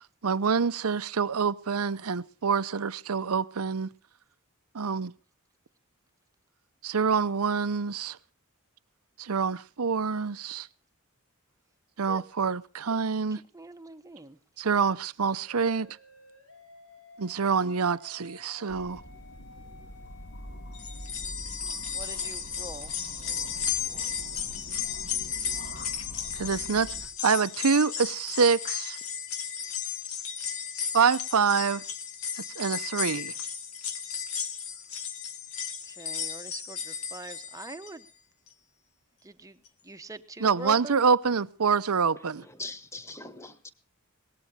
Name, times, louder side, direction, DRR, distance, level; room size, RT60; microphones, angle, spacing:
voice 1, 0.2-3.9 4.7-5.1 6.8-8.2 9.2-10.7 12.0-13.4 14.6-16.0 17.2-19.0 26.3-26.9 27.2-29.0 30.9-31.8 32.6-33.3 40.4-42.4, right 5 dB, 85° right, 0.7 m, -26 dB
voice 2, 13.5-14.4 21.9-22.9 35.9-38.0 39.2-39.6 39.8-41.0, right 2 dB, 15° right, 1.0 m, -43 dB
sound 1, 15.4-21.1, left 4 dB, 75° left, 5.7 m, -54 dB
sound 2, 18.7-27.1, equal, 55° left, 2.7 m, -44 dB
sound 3, 20.7-38.1 38.5-38.6 39.7-39.8, left 7 dB, 90° left, 1.7 m, -34 dB
voice 3, 42.4-43.7, left 2 dB, 15° left, 1.2 m, -41 dB
22.0 x 18.5 x 2.8 m
head